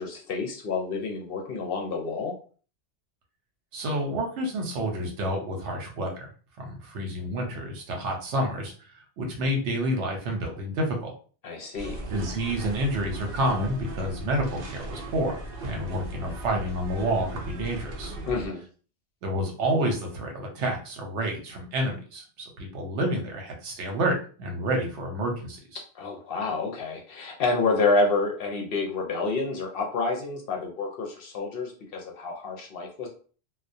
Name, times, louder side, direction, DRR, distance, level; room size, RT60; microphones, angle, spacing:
voice 1, 0.0-2.3 11.4-12.0 18.3-18.6 26.0-33.1, left 3 dB, 60° left, 1 dB, 0.7 m, -28 dB
voice 2, 3.7-6.3 6.6-8.7 9.2-11.1 12.1-15.4 15.6-18.1 19.2-25.8, right 1 dB, 80° right, 2 dB, 1.0 m, -29 dB
sound 1, 11.8-18.5, right 1 dB, 60° right, 0.7 m, -37 dB
2.2 x 2.2 x 2.6 m, 0.40 s
omnidirectional pair, 1.2 m